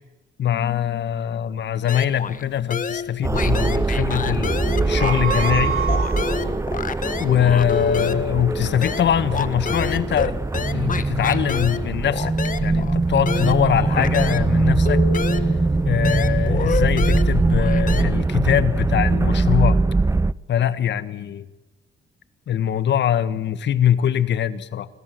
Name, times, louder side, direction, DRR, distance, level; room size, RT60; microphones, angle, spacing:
voice 1, 0.4-4.6 4.9-5.8 7.1-12.3 12.6-15.0 15.8-19.8 20.5-21.4 22.5-24.9, left 9 dB, 65° left, 14 dB, 1.6 m, -22 dB
sound 1, 1.9-2.4 2.7-5.6 5.9-14.5 14.8-18.0, left 6 dB, 40° left, 1.6 m, -29 dB
sound 2, 3.2-20.3, right 3 dB, 15° right, 0.8 m, -22 dB
sound 3, 4.7-6.6, right 8 dB, 85° right, 4.6 m, -27 dB
28.5 x 20.5 x 7.9 m, 1.1 s
cardioid pair, 90°, 20 cm